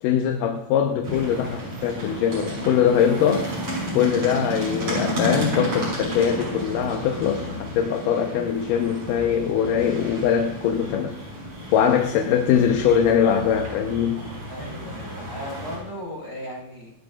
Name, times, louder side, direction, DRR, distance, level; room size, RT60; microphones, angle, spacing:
voice 1, 0.0-3.5 3.9-11.2 11.7-14.3, left 8 dB, 75° left, 3 dB, 2.4 m, -22 dB
sound 1, 1.0-15.8, equal, 45° right, 7.7 m, -32 dB
voice 2, 14.5-16.9, equal, 30° left, -2 dB, 5.8 m, -36 dB
26.5 x 13.0 x 2.4 m, 0.86 s
omnidirectional pair, 4.0 m